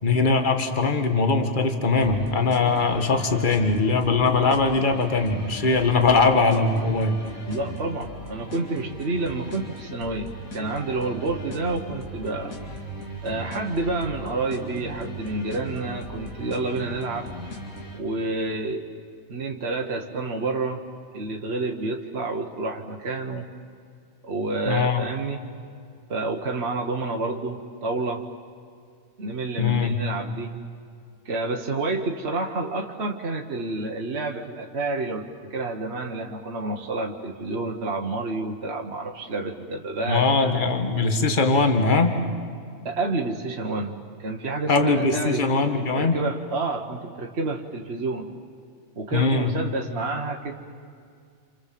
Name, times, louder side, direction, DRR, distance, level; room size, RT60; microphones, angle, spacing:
voice 1, 0.0-7.1 24.7-25.0 29.6-30.0 40.1-42.1 44.7-46.2 49.1-49.5, left 3 dB, 35° left, 6 dB, 1.8 m, -21 dB
sound 1, 2.0-18.0, equal, 85° left, 3.0 m, -38 dB
voice 2, 7.5-12.5 13.2-17.3 17.9-18.9 19.3-20.8 21.1-23.5 24.2-25.4 26.1-28.2 29.2-30.5 31.2-40.6 42.8-48.3 49.0-50.5, right 2 dB, 50° right, 2 dB, 1.6 m, -29 dB
28.0 x 28.0 x 7.6 m, 2.3 s
omnidirectional pair, 1.4 m